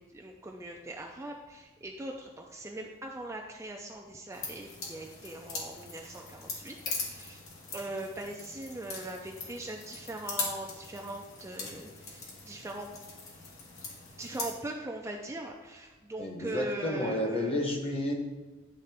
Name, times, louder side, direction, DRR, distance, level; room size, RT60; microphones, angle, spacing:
voice 1, 0.0-7.4 7.7-12.9 14.2-17.6, right 1 dB, 15° right, 1 dB, 0.4 m, -41 dB
sound 1, 4.3-14.5, left 3 dB, 75° left, 1.8 m, -41 dB
voice 2, 16.2-18.1, left 1 dB, 30° left, 2 dB, 1.0 m, -31 dB
11.0 x 3.7 x 3.4 m, 1.2 s
head